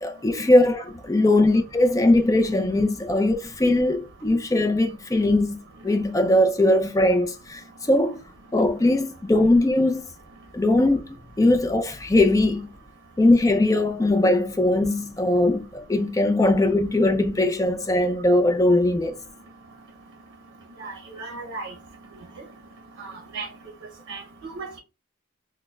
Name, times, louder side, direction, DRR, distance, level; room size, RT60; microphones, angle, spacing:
voice 1, 0.0-5.6 5.8-7.6 7.9-8.2 8.5-10.1 10.5-11.0 11.4-12.7 13.2-19.2, left 1 dB, 15° left, 0.3 m, -20 dB
voice 2, 20.8-21.7 23.0-23.5 24.1-24.2 24.5-24.8, right 3 dB, 85° right, 0.6 m, -35 dB
6.1 x 2.0 x 2.2 m
head